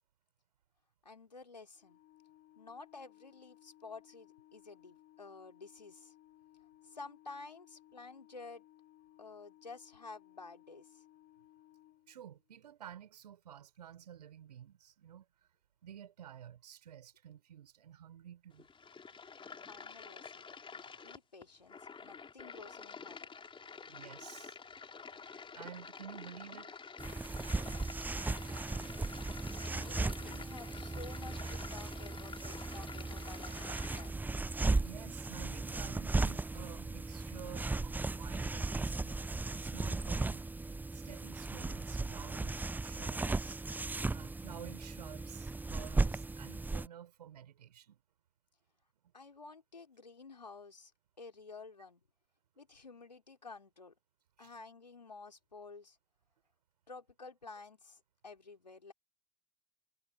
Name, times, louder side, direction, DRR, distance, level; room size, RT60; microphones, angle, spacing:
voice 1, 1.0-2.0 2.6-6.1 6.8-8.6 9.2-11.0 19.7-20.4 20.7-23.3 28.4-28.9 29.7-34.3 49.1-50.9 51.2-52.0 52.6-53.9 54.4-56.0 56.9-58.9, left 4 dB, 85° left, 3.9 m, -52 dB
Organ, 1.8-12.6, left 14 dB, 45° left, 4.1 m, -62 dB
voice 2, 12.1-15.3 15.8-18.7 23.8-24.6 25.2-26.8 34.8-40.4 40.9-43.6 44.1-48.0 54.4-54.5, right 10 dB, 75° right, 5.5 m, -52 dB
sound 1, 18.5-34.1, left 5 dB, 25° left, 4.4 m, -49 dB
sound 2, 27.0-46.9, right 3 dB, 10° right, 0.5 m, -36 dB
figure-of-eight pair, 65°, 21 cm